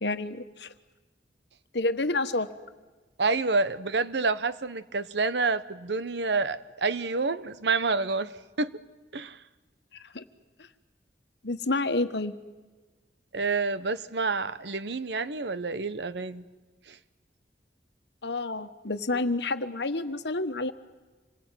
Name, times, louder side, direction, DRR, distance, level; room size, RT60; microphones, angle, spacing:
voice 1, 0.0-0.7 1.7-2.5 10.0-10.2 11.4-12.3 18.2-20.7, left 2 dB, 75° left, 10 dB, 1.3 m, -29 dB
voice 2, 3.2-8.3 8.6-8.7 9.1-9.4 13.3-16.4 16.9-17.0, right 3 dB, 75° right, 14 dB, 1.0 m, -28 dB
26.5 x 21.0 x 9.1 m, 1.2 s
head